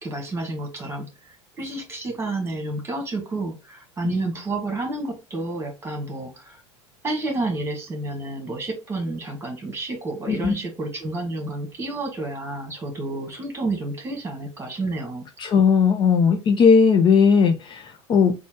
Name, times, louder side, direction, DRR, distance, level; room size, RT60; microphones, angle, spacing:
voice 1, 0.0-6.6 7.0-15.2, right 2 dB, 15° right, 2 dB, 1.9 m, -30 dB
voice 2, 15.4-18.3, left 6 dB, 30° left, 5 dB, 0.6 m, -17 dB
4.2 x 2.4 x 4.6 m, 0.28 s
figure-of-eight pair, 75°, 15 cm